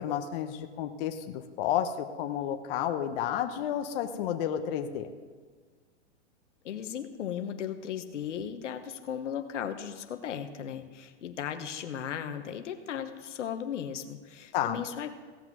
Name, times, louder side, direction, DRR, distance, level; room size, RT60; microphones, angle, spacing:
voice 1, 0.0-5.1 14.5-14.8, left 10 dB, 50° left, 6 dB, 0.9 m, -31 dB
voice 2, 6.6-15.1, left 9 dB, 80° left, 7 dB, 1.1 m, -36 dB
16.5 x 5.8 x 6.1 m, 1.5 s
hypercardioid pair, 130°, 35 cm